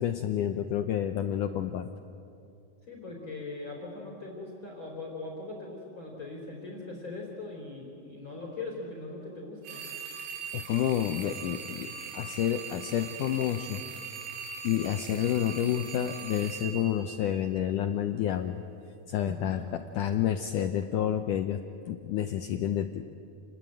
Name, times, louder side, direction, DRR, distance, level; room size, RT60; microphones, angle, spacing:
voice 1, 0.0-1.9 10.5-13.8 14.6-18.6 19.1-19.6 20.0-21.6 21.9-23.1, left 10 dB, 80° left, 7 dB, 1.9 m, -29 dB
voice 2, 2.8-9.9 19.2-19.7, left 2 dB, 30° left, -1 dB, 4.2 m, -40 dB
sound 1, 9.6-17.8, right 6 dB, 90° right, 4.2 m, -41 dB
28.5 x 21.0 x 9.0 m, 2.6 s
omnidirectional pair, 4.7 m